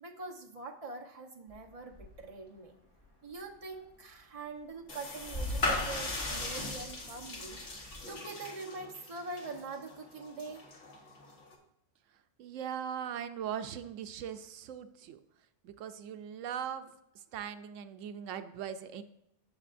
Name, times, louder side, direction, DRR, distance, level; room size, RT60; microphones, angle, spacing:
voice 1, 0.0-2.7 3.2-7.6 8.1-10.6, right 3 dB, 30° right, 1 dB, 1.0 m, -43 dB
sound 1, 1.5-2.5 2.8-8.0, left 1 dB, 30° left, 2.9 m, -43 dB
sound 2, 4.9-11.5, left 3 dB, 75° left, 1.7 m, -39 dB
voice 2, 12.4-15.2 15.6-16.9 17.3-19.0, right 8 dB, 85° right, 10 dB, 1.0 m, -40 dB
16.0 x 6.3 x 2.5 m, 0.81 s
omnidirectional pair, 1.3 m